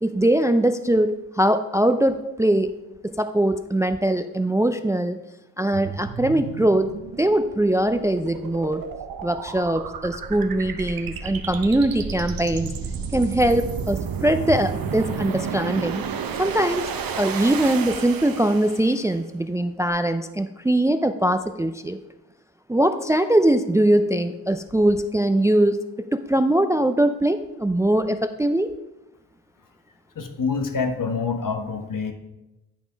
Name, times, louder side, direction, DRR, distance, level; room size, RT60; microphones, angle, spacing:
voice 1, 0.0-2.7 3.0-5.2 5.6-6.9 7.2-8.9 9.2-12.7 13.1-16.0 16.4-16.9 17.2-22.0 22.7-25.8 26.1-28.7, right 1 dB, 10° right, 9 dB, 0.4 m, -21 dB
sound 1, 5.7-19.1, right 6 dB, 65° right, 0.8 m, -32 dB
voice 2, 30.1-32.1, left 5 dB, 55° left, 6 dB, 1.2 m, -26 dB
10.5 x 3.5 x 5.1 m, 0.97 s
supercardioid pair, 45°, 38 cm